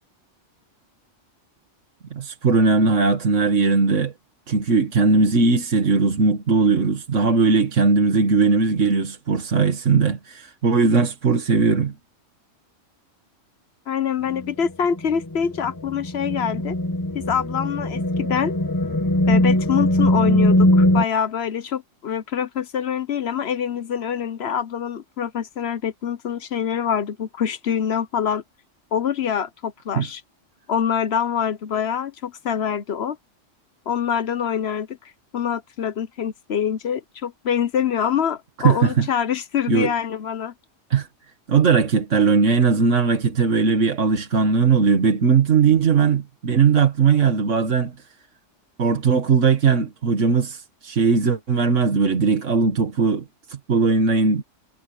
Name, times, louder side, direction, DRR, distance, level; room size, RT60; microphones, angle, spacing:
voice 1, 2.1-4.1 4.5-11.9 30.0-30.1 38.6-39.1 39.7-39.9 40.9-41.1 41.5-48.0 48.8-54.4, right 4 dB, 75° right, 1.9 m, -19 dB
voice 2, 13.9-16.8 17.1-18.5 19.3-28.4 28.9-30.2 30.7-33.2 33.9-35.0 35.3-40.5, left 8 dB, 60° left, 1.1 m, -25 dB
sound 1, 14.3-21.0, left 1 dB, 15° left, 1.5 m, -20 dB
omnidirectional pair, 1.3 m